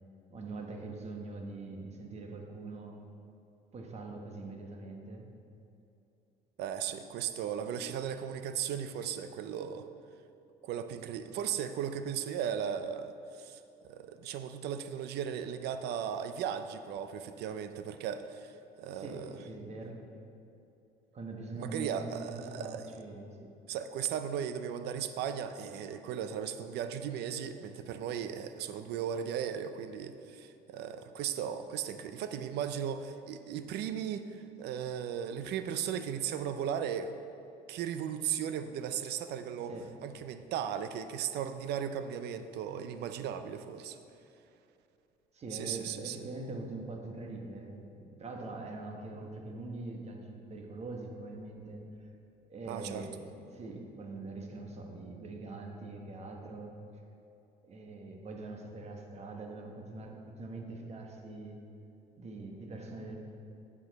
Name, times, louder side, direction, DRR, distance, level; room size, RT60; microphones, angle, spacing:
voice 1, 0.3-3.0 3.7-5.3 7.6-7.7 18.9-20.0 21.1-23.5 39.7-39.9 45.3-51.8 52.5-56.7 57.6-61.6 62.2-63.2, right 2 dB, 40° right, 2 dB, 1.2 m, -43 dB
voice 2, 6.6-9.9 10.6-19.3 21.6-22.9 23.7-37.1 37.7-39.7 40.0-44.0 45.5-46.3 52.7-53.1, right 8 dB, 75° right, 10 dB, 0.5 m, -36 dB
9.6 x 6.2 x 4.0 m, 2.8 s
cardioid pair, 110°, 17 cm